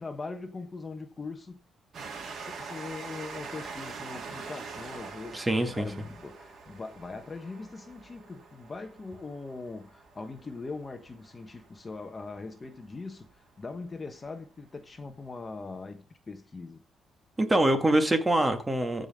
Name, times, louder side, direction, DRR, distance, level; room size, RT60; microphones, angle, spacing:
voice 1, 0.0-1.6 2.4-16.8, left 3 dB, 30° left, 1.2 m, -41 dB
Train, 1.9-13.1 13.8-13.9 14.2-14.3, right 5 dB, 60° right, 2.9 m, -44 dB
voice 2, 5.3-5.9 17.4-19.1, right 1 dB, 15° right, 2.1 m, -24 dB
14.5 x 5.3 x 3.7 m
cardioid pair, 90°, 0 cm